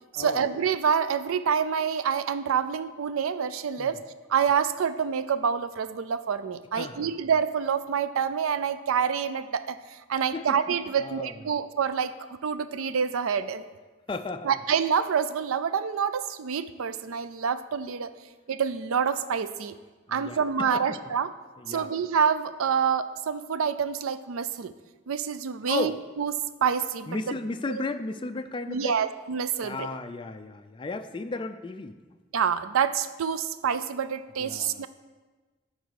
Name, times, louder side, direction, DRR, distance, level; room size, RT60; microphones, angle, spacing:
voice 1, 0.1-4.0 4.3-12.1 12.4-13.6 14.4-18.1 18.5-19.8 20.1-21.3 21.7-24.7 25.1-25.9 26.2-26.3 26.6-27.3 27.7-27.8 28.7-29.9 32.3-34.9, right 7 dB, 90° right, 13 dB, 0.4 m, -27 dB
voice 2, 6.8-7.1 10.3-10.6 11.0-11.3 14.1-14.5 20.1-21.0 21.6-21.9 25.7-26.0 27.1-29.0 29.6-32.0 34.4-34.8, left 3 dB, 25° left, 8 dB, 0.3 m, -34 dB
10.5 x 4.0 x 6.4 m, 1.3 s
head